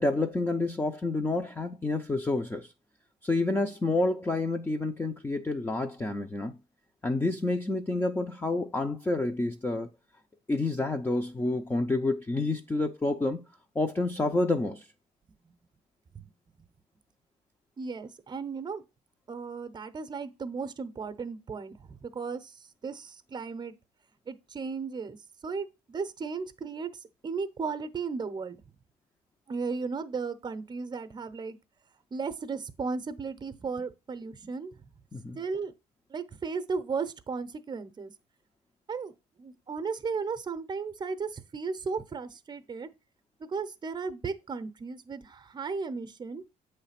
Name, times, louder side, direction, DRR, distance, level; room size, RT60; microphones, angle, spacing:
voice 1, 0.0-2.7 3.2-6.5 7.0-9.9 10.5-13.4 13.7-14.9 35.1-35.4, left 2 dB, 15° left, 0.6 m, -29 dB
voice 2, 17.8-18.8 19.3-23.7 24.3-25.2 25.4-28.6 29.5-31.6 32.1-34.8 35.4-35.7 36.1-38.1 38.9-42.9 43.4-46.4, right 5 dB, 25° right, 0.8 m, -35 dB
7.9 x 3.3 x 5.7 m
cardioid pair, 110°, 17 cm